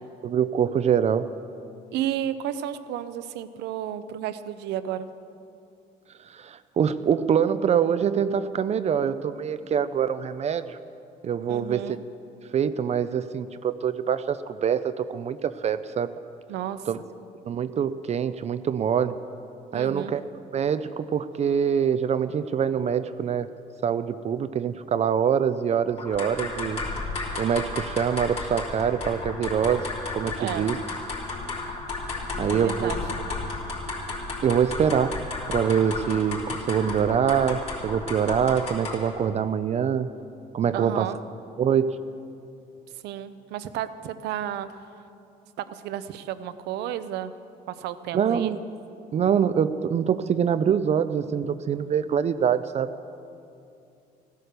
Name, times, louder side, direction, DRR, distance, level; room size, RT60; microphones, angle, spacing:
voice 1, 0.2-1.3 6.3-10.8 11.2-12.0 12.5-16.1 16.9-17.0 17.4-19.2 19.7-20.2 20.5-23.5 23.8-26.8 27.4-30.8 32.4-32.9 34.4-35.2 35.5-40.1 40.5-41.1 41.6-42.0 48.1-48.6 49.1-52.9, right 8 dB, 40° right, 12 dB, 0.5 m, -24 dB
voice 2, 1.9-5.1 11.5-12.0 16.5-17.0 19.7-20.1 30.4-30.7 32.5-33.0 40.7-41.2 43.0-44.7 45.6-47.3 47.7-48.5, right 11 dB, 85° right, 12 dB, 0.7 m, -32 dB
sound 1, 26.0-39.2, left 3 dB, 40° left, 3.5 m, -33 dB
15.5 x 11.5 x 6.7 m, 2.6 s
cardioid pair, 110°, 17 cm